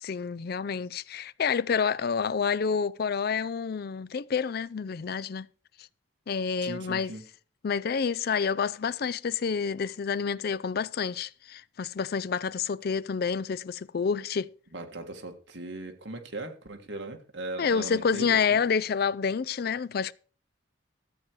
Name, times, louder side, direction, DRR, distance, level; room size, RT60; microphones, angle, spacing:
voice 1, 0.0-5.5 6.3-7.1 7.6-14.5 17.6-20.1, left 6 dB, 50° left, 0.4 m, -28 dB
voice 2, 6.6-7.2 14.7-18.6, right 2 dB, 70° right, 1.9 m, -39 dB
13.5 x 8.2 x 4.7 m
head